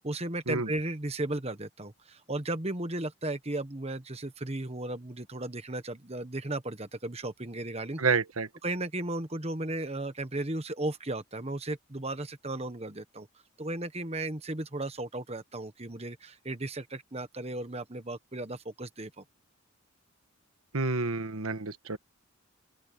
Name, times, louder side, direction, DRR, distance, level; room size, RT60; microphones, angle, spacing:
voice 1, 0.0-8.0 8.6-13.3 13.6-19.2, right 2 dB, 30° right, 1.3 m, -35 dB
voice 2, 8.0-8.5 20.7-22.0, right 4 dB, 75° right, 1.3 m, -29 dB
open air
head